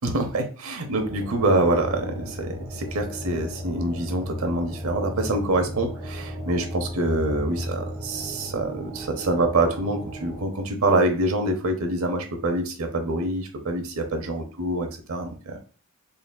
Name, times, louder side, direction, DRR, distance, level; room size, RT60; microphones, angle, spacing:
voice 1, 0.0-15.6, right 2 dB, 85° right, 4 dB, 0.8 m, -25 dB
sound 1, 0.9-10.4, equal, 15° right, 1.0 m, -35 dB
3.9 x 3.4 x 2.3 m, 0.38 s
head